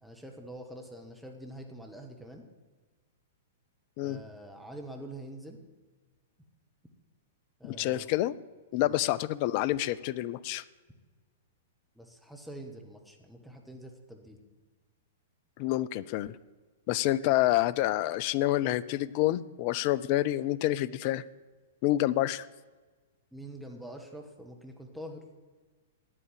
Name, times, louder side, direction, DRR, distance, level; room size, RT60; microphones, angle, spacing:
voice 1, 0.0-2.4 4.0-5.6 7.6-8.1 8.7-9.0 11.9-14.4 23.3-25.2, right 1 dB, ahead, 2 dB, 1.5 m, -45 dB
voice 2, 7.6-8.4 8.7-10.6 15.6-16.4 16.9-21.2 21.8-22.5, left 15 dB, 40° left, 17 dB, 0.4 m, -28 dB
9.3 x 9.0 x 7.8 m, 1.3 s
figure-of-eight pair, 105°, 0 cm